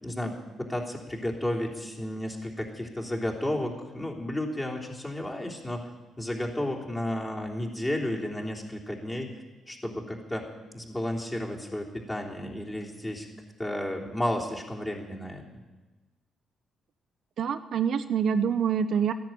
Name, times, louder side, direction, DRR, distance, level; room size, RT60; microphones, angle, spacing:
voice 1, 0.0-5.9 6.2-9.3 9.7-10.5 10.7-13.3 13.6-15.4, left 1 dB, 15° left, -1 dB, 3.3 m, -32 dB
voice 2, 17.4-19.1, right 7 dB, 65° right, 10 dB, 0.7 m, -26 dB
14.0 x 10.5 x 9.3 m, 1.2 s
cardioid pair, 90°, 0 cm